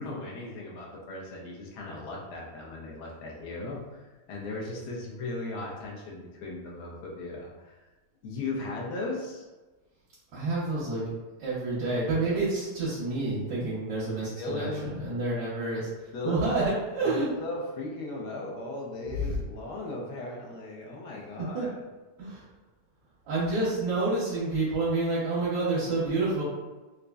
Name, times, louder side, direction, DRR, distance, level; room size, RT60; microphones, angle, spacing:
voice 1, 0.0-4.0 4.3-7.7 8.2-9.4 14.2-15.1 16.1-16.7 17.0-21.7, left 2 dB, 75° left, -2 dB, 1.3 m, -37 dB
voice 2, 10.3-11.0 11.4-15.9 16.2-17.3 19.1-19.2 21.4-21.7 22.2-22.4 23.3-26.4, right 2 dB, 80° right, -9 dB, 1.5 m, -28 dB
4.2 x 2.5 x 2.3 m, 1.2 s
omnidirectional pair, 1.8 m